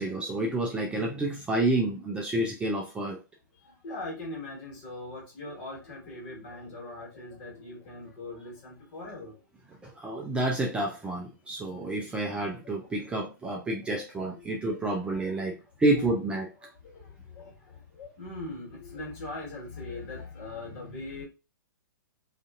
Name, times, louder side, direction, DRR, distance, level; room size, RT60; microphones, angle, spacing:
voice 1, 0.0-3.2 9.8-16.5, right 2 dB, 10° right, 0 dB, 0.4 m, -29 dB
voice 2, 3.6-9.4 13.0-13.2 13.5-13.7 14.2-14.5 15.1-15.3 16.3-21.2, left 2 dB, 40° left, -3 dB, 1.6 m, -41 dB
2.5 x 2.5 x 2.4 m, 0.29 s
hypercardioid pair, 120°, 12 cm